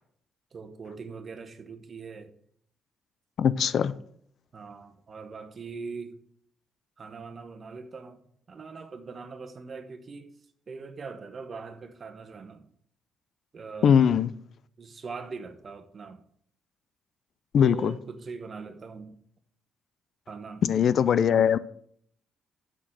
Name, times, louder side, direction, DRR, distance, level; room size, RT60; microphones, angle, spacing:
voice 1, 0.5-2.3 4.5-6.2 7.0-8.2 8.5-10.3 10.7-12.7 13.5-14.0 14.8-16.2 17.6-19.2 20.3-20.6, right 4 dB, 40° right, 1.1 m, -41 dB
voice 2, 3.4-3.9 13.8-14.3 17.5-17.9 20.6-21.6, left 8 dB, 60° left, 0.4 m, -21 dB
6.3 x 6.2 x 7.4 m
cardioid pair, 90°, 0 cm